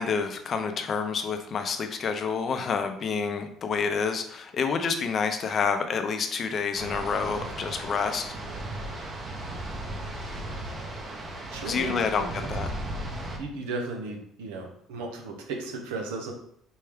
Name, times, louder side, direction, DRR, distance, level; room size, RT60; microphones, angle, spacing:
voice 1, 0.0-8.3 11.7-12.7, left 5 dB, 45° left, 6 dB, 0.6 m, -28 dB
sound 1, 6.8-13.4, right 1 dB, 35° right, 0.8 m, -36 dB
voice 2, 11.5-12.5 13.3-16.3, right 3 dB, 90° right, 3 dB, 0.7 m, -35 dB
4.5 x 2.2 x 3.4 m, 0.69 s
supercardioid pair, 85°, 0 cm